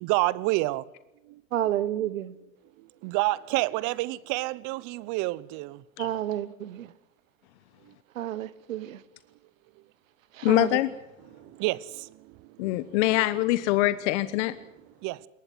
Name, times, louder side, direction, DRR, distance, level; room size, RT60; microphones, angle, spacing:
voice 1, 0.0-0.8 3.0-5.8 11.6-11.8 15.0-15.2, right 20 dB, 50° right, 1.0 m, -27 dB
voice 2, 1.5-2.3 6.0-6.9 8.1-9.0 10.3-10.8, right 12 dB, 80° right, 1.1 m, -30 dB
voice 3, 10.4-10.9 12.6-14.5, left 16 dB, 60° left, 1.1 m, -24 dB
22.0 x 19.5 x 7.7 m
hypercardioid pair, 100°, 39 cm